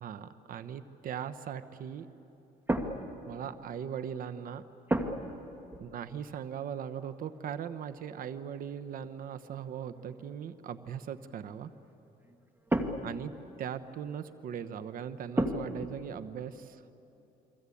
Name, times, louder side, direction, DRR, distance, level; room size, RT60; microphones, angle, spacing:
voice 1, 0.0-2.1 3.3-4.6 5.8-11.7 13.0-13.3 13.6-16.9, right 8 dB, 55° right, 11 dB, 1.1 m, -39 dB
sound 1, 2.7-3.9 4.9-5.4 5.7-6.0 6.9-8.1 9.0-9.1 9.6-10.3 12.2-13.4 15.3-15.9, right 1 dB, 10° right, 1.8 m, -33 dB
29.0 x 22.5 x 8.6 m, 2.9 s
cardioid pair, 110°, 17 cm